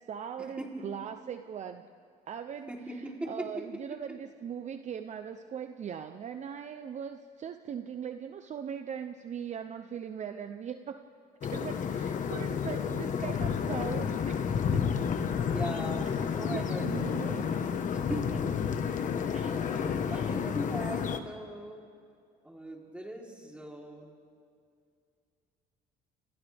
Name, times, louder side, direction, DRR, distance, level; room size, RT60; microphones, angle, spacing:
voice 1, 0.1-1.9 2.3-2.7 3.3-11.0 11.4-14.5 14.7-14.8 16.0-16.2 16.5-17.5 19.2-19.6 20.1-20.3, right 8 dB, 45° right, 8 dB, 0.8 m, -40 dB
voice 2, 2.7-3.5 15.4-16.9 17.3-17.5 17.9-18.5 19.4-21.8 22.4-24.1, right 1 dB, 5° right, -1 dB, 3.7 m, -40 dB
sound 1, 11.4-21.2, left 7 dB, 50° left, 1.4 m, -31 dB
30.0 x 27.5 x 3.6 m, 2.3 s
cardioid pair, 110°, 17 cm